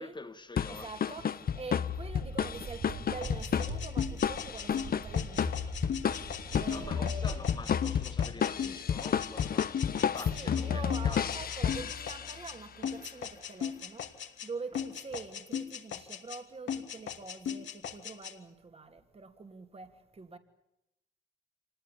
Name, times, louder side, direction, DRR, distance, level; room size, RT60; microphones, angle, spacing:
voice 1, 0.0-1.3 6.7-11.4, left 3 dB, 25° left, 1.7 m, -46 dB
sound 1, 0.6-12.5, left 8 dB, 50° left, 1.0 m, -32 dB
voice 2, 0.7-5.7 6.5-7.5 10.3-14.1 14.4-20.4, right 4 dB, 30° right, 2.9 m, -45 dB
sound 2, 2.0-8.3, right 5 dB, 55° right, 6.8 m, -44 dB
sound 3, 3.2-12.6 12.8-14.5 14.7-16.4 16.7-18.3, left 8 dB, 65° left, 2.7 m, -38 dB
25.5 x 19.5 x 8.7 m
cardioid pair, 90°, 20 cm